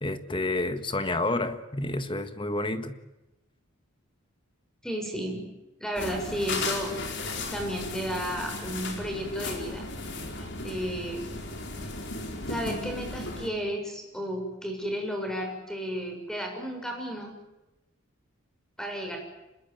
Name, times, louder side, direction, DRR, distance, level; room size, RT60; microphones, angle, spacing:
voice 1, 0.0-2.9, left 2 dB, 25° left, 10 dB, 1.6 m, -29 dB
voice 2, 4.8-5.5 5.8-6.9 7.5-9.9 10.6-11.2 12.5-17.3 18.8-19.2, equal, 5° left, 3 dB, 6.8 m, -33 dB
sound 1, 5.9-13.5, left 3 dB, 55° left, 4.6 m, -35 dB
26.5 x 21.5 x 9.4 m, 0.97 s
head